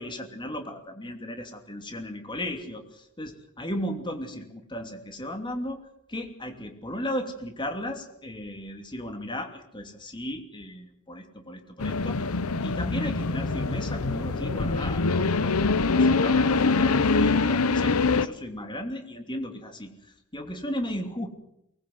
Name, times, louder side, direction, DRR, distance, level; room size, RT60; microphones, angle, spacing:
voice 1, 0.0-5.8 6.1-12.2 12.6-19.9 20.3-21.3, equal, 20° left, 5 dB, 2.9 m, -35 dB
sound 1, 11.8-18.3, left 3 dB, 80° left, 0.9 m, -24 dB
24.0 x 20.5 x 7.9 m, 0.78 s
head